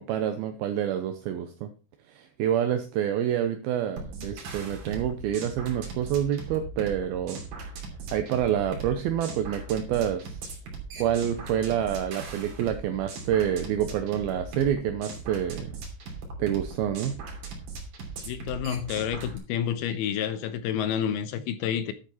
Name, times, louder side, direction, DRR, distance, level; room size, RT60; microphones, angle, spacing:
voice 1, 0.0-1.7 2.1-7.4 8.1-10.4 11.0-15.8 16.4-17.2, right 10 dB, 80° right, 2.3 m, -27 dB
sound 1, 4.0-19.4, right 4 dB, 55° right, 4.5 m, -39 dB
voice 2, 18.3-21.9, left 9 dB, 80° left, 2.4 m, -29 dB
11.0 x 8.4 x 4.2 m
omnidirectional pair, 5.1 m